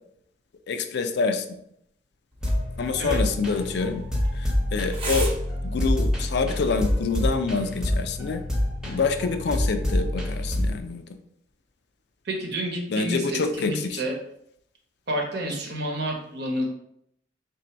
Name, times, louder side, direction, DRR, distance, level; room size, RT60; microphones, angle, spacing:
voice 1, 0.7-1.5 2.8-4.0 4.4-5.3 5.6-8.4 8.8-11.0 12.9-14.0, left 4 dB, 65° left, 8 dB, 0.4 m, -26 dB
sound 1, 2.3-7.3, right 3 dB, 30° right, 0.8 m, -40 dB
sound 2, 2.4-10.8, left 1 dB, 5° right, 0.8 m, -27 dB
voice 2, 12.2-14.1 15.1-16.7, right 1 dB, 65° right, 0 dB, 1.0 m, -29 dB
3.7 x 2.6 x 4.4 m, 0.74 s
head